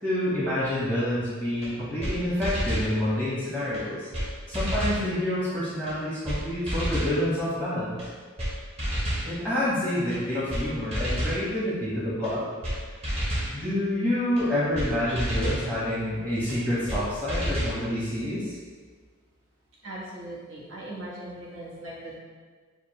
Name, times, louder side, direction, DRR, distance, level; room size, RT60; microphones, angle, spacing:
voice 1, 0.0-4.1 4.5-8.0 9.2-12.4 13.5-18.6, left 1 dB, 15° right, -11 dB, 1.0 m, -28 dB
sound 1, 1.6-1.7 2.0-2.1 2.4-2.9 3.7-3.8 4.1-4.3 4.5-5.0 5.9-6.0 6.3-6.4 6.7-7.2 8.0-8.1 8.4-8.5 8.8-9.3 10.1-10.2 10.5-10.6 10.9-11.4 12.2-12.3 12.6-12.8 13.0-13.5 14.4-14.5 14.8-14.9 15.2-15.6 16.5-16.6 16.9-17.0 17.3-17.8, equal, 30° right, 1.2 m, -29 dB
voice 2, 19.8-22.2, right 1 dB, 75° right, -6 dB, 1.4 m, -39 dB
6.8 x 2.4 x 3.0 m, 1.5 s
head